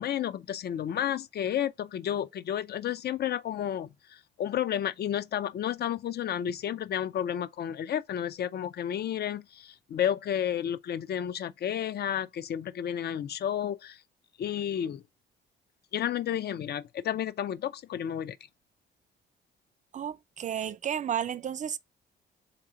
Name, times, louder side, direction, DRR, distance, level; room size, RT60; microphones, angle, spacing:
voice 1, 0.0-14.0 14.4-15.0 15.9-18.4, left 10 dB, 55° left, 0.5 m, -31 dB
voice 2, 19.9-21.8, right 9 dB, 40° right, 0.4 m, -32 dB
3.7 x 2.9 x 4.9 m
cardioid pair, 90°, 20 cm